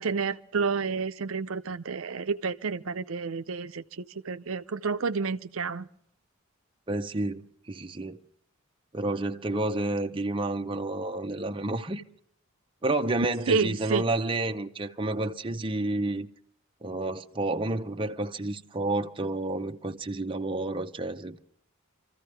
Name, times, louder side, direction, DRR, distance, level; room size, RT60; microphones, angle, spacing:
voice 1, 0.0-5.9 13.5-14.0, right 5 dB, 75° right, 0.6 m, -30 dB
voice 2, 6.9-8.2 8.9-12.0 12.8-16.3 16.8-21.4, right 2 dB, 25° right, 0.8 m, -30 dB
27.0 x 14.5 x 3.3 m
head